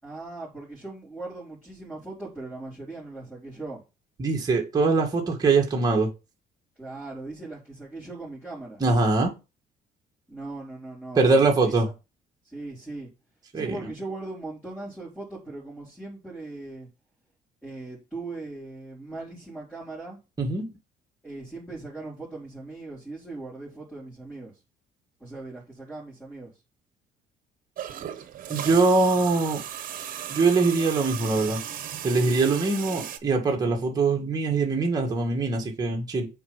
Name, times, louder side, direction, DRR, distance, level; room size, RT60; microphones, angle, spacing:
voice 1, 0.0-3.8 6.8-8.8 10.3-11.9 12.4-13.1 13.5-16.9 17.6-20.2 21.2-24.5 25.2-26.5, right 2 dB, 5° left, 4.6 m, -39 dB
voice 2, 4.2-6.1 8.8-9.3 11.2-11.9 13.5-13.8 20.4-20.7 28.5-29.6 30.3-31.6 32.0-36.3, right 3 dB, 20° right, 2.1 m, -22 dB
sound 1, 27.8-33.2, right 10 dB, 55° right, 1.1 m, -36 dB
7.0 x 4.8 x 5.8 m
cardioid pair, 110°, 17 cm